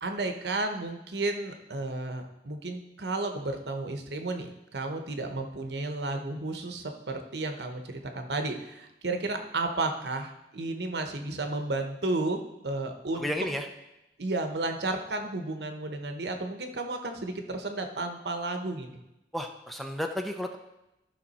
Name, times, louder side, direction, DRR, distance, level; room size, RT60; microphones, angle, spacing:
voice 1, 0.0-12.4 12.6-13.4 14.2-19.0, right 2 dB, 70° right, 5 dB, 1.0 m, -33 dB
voice 2, 13.2-13.7 19.3-20.6, equal, ahead, 4 dB, 0.6 m, -32 dB
13.5 x 5.8 x 4.2 m, 0.93 s
head